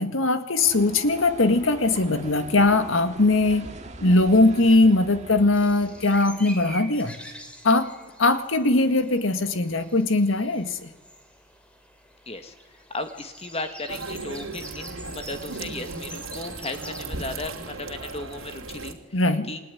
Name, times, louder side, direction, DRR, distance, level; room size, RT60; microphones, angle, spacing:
voice 1, 0.0-3.7 4.0-7.1 7.6-7.9 8.2-10.9 19.1-19.5, left 2 dB, 75° left, 10 dB, 1.8 m, -20 dB
sound 1, 0.6-6.6, right 1 dB, 35° right, 2.0 m, -42 dB
sound 2, 5.5-17.0, equal, 5° left, 2.9 m, -45 dB
voice 2, 12.9-19.0 19.5-19.6, left 2 dB, 30° left, 8 dB, 1.8 m, -35 dB
sound 3, 13.9-18.9, right 3 dB, 85° right, 2.9 m, -36 dB
28.0 x 19.0 x 9.9 m, 1.4 s
head